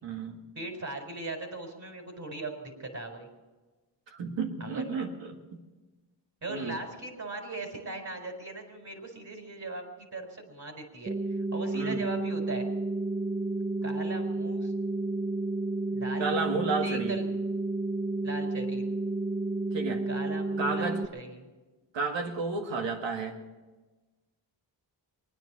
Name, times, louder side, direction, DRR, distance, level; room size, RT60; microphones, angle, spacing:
voice 1, 0.0-0.4 4.1-5.6 6.5-6.8 11.7-12.1 16.2-17.2 19.7-20.1 20.6-21.0 21.9-23.4, right 4 dB, 75° right, 4 dB, 2.1 m, -32 dB
voice 2, 0.6-3.3 4.6-5.1 6.4-11.1 11.5-12.7 13.8-14.7 15.9-16.3 16.8-17.2 18.2-18.9 20.1-21.5, right 2 dB, 40° right, 4 dB, 4.4 m, -39 dB
sound 1, 11.1-21.1, right 2 dB, 15° right, 0.6 m, -31 dB
22.5 x 10.0 x 6.2 m, 1.2 s
cardioid pair, 70°, 44 cm